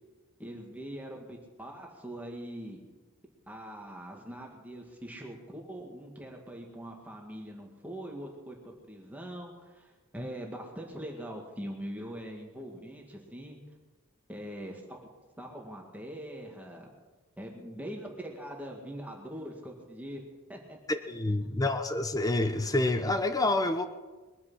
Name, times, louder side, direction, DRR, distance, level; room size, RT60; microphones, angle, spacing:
voice 1, 0.4-2.8 3.5-13.6 14.3-15.1 15.4-16.9 17.4-20.2 20.5-20.8 21.3-21.5, equal, 5° right, 0 dB, 2.0 m, -42 dB
voice 2, 20.9-23.9, left 2 dB, 15° left, 9 dB, 0.7 m, -28 dB
22.5 x 9.6 x 5.6 m, 1.2 s
head